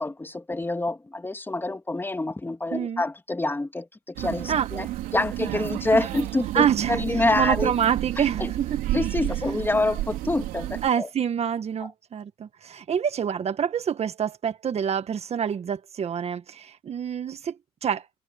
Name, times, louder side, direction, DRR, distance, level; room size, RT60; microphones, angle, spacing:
voice 1, 0.0-4.9 5.1-7.7 8.2-8.5 8.9-11.1, left 2 dB, 15° left, 2.9 m, -27 dB
voice 2, 2.7-3.0 4.5-4.7 5.9-6.1 6.5-8.8 9.5-9.6 10.8-17.6 17.8-18.0, right 8 dB, 50° right, 1.7 m, -27 dB
sound 1, 4.2-10.9, right 15 dB, 80° right, 3.8 m, -31 dB
supercardioid pair, 75°, 14 cm